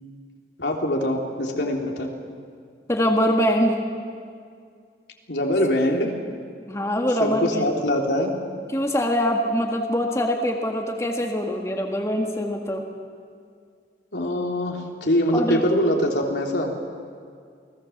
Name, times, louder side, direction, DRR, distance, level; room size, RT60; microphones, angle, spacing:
voice 1, 0.6-2.1 5.3-6.1 7.2-8.3 14.1-16.7, equal, 85° left, 0 dB, 3.3 m, -23 dB
voice 2, 2.9-3.8 6.7-7.6 8.7-12.8 15.3-15.6, equal, 15° left, 2 dB, 1.7 m, -23 dB
28.5 x 19.5 x 7.3 m, 2.2 s
head